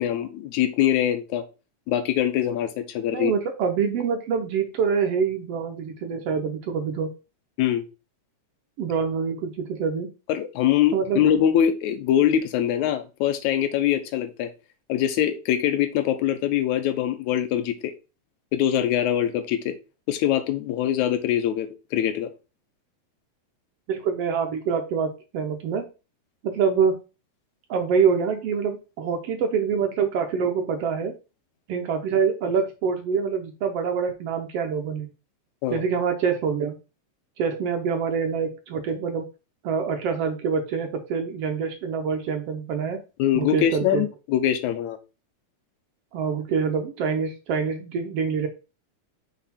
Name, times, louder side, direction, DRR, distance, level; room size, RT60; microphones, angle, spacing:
voice 1, 0.0-1.4 1.9-3.3 7.6-7.9 10.3-14.5 14.9-17.9 18.5-19.8 20.1-22.3 35.6-35.8 43.2-45.0, left 10 dB, 85° left, 9 dB, 2.1 m, -23 dB
voice 2, 3.1-7.1 8.8-10.1 10.9-11.2 23.9-25.8 26.4-27.0 27.7-31.1 31.7-35.1 35.7-36.8 37.4-39.2 39.6-43.0 43.3-44.0 46.1-48.5, right 6 dB, 70° right, 5 dB, 1.6 m, -25 dB
6.1 x 4.1 x 4.2 m, 0.30 s
omnidirectional pair, 3.4 m